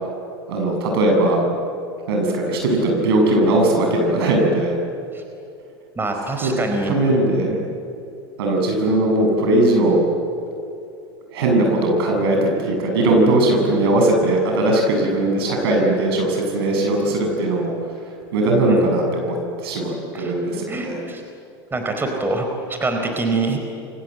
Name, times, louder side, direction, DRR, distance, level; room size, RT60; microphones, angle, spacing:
voice 1, 0.5-1.4 2.1-4.8 6.4-6.5 6.9-7.5 8.4-10.0 11.3-17.7 18.3-21.0, right 1 dB, 70° right, 1 dB, 7.6 m, -19 dB
voice 2, 6.0-6.9 7.5-7.6 18.6-18.9 20.1-20.3 20.7-21.2 21.7-23.7, right 2 dB, 15° right, 4 dB, 4.4 m, -25 dB
29.5 x 24.0 x 7.9 m, 2.6 s
hypercardioid pair, 85°, 13 cm